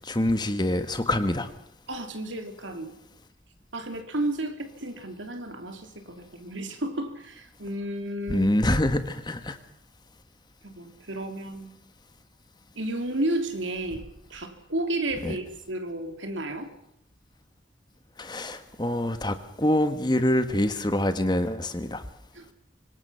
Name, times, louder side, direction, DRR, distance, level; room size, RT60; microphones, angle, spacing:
voice 1, 0.0-1.5 8.3-9.6 15.2-15.3 18.2-22.0, left 1 dB, 25° left, 10 dB, 1.5 m, -25 dB
voice 2, 1.9-2.9 3.7-8.5 10.6-11.7 12.7-16.7 22.3-22.5, right 1 dB, 85° right, 6 dB, 3.2 m, -32 dB
25.5 x 19.5 x 5.8 m, 0.75 s
head